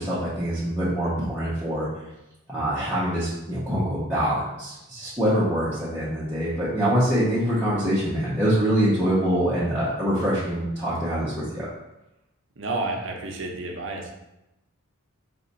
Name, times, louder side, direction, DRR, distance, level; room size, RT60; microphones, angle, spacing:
voice 1, 0.0-1.9 2.5-11.7, equal, 10° right, -11 dB, 0.7 m, -24 dB
voice 2, 12.6-14.1, right 2 dB, 55° right, 1 dB, 0.6 m, -30 dB
4.1 x 2.4 x 4.0 m, 0.93 s
head